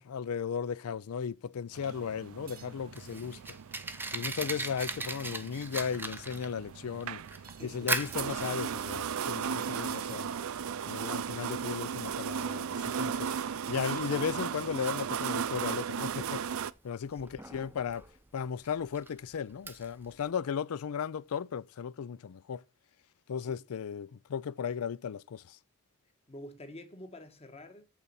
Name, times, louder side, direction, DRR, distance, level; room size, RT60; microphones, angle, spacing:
voice 1, 0.0-3.6 4.1-7.2 7.7-10.3 10.9-13.3 13.7-16.4 16.8-18.0 18.3-22.6 23.3-25.6, left 7 dB, 75° left, 0.4 m, -36 dB
sound 1, 1.7-16.7, right 7 dB, 70° right, 0.4 m, -36 dB
sound 2, 2.5-2.9 4.8-5.6 7.4-8.0 9.6-10.6 11.9-13.0, right 10 dB, 40° right, 0.9 m, -54 dB
Fire, 2.6-20.3, right 3 dB, 10° right, 0.6 m, -41 dB
voice 2, 7.6-8.0 17.1-17.3 26.3-27.8, left 1 dB, 30° left, 1.2 m, -48 dB
8.4 x 4.1 x 6.9 m
head